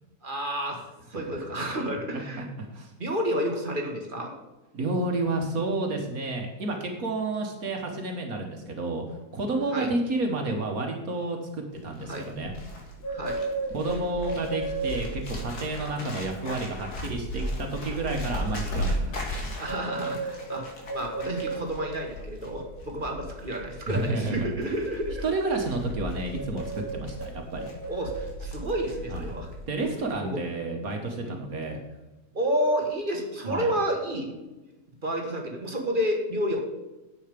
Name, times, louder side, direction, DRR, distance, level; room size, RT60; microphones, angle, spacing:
voice 1, 0.2-0.8 1.1-2.5 3.0-4.3 9.7-9.9 12.1-12.2 13.1-13.4 19.6-25.2 27.0-27.1 27.9-29.5 30.2-30.4 31.2-31.4 32.3-34.4 35.0-36.6, equal, 35° right, 2 dB, 1.7 m, -30 dB
voice 2, 4.7-12.5 13.7-19.5 23.9-24.5 25.2-27.7 29.1-29.2 29.7-31.8 33.5-33.7, right 2 dB, 70° right, 3 dB, 1.7 m, -30 dB
Bird, 11.8-29.6 29.8-30.2, right 1 dB, 85° left, 2.5 m, -34 dB
10.0 x 7.9 x 5.2 m, 1.1 s
omnidirectional pair, 1.6 m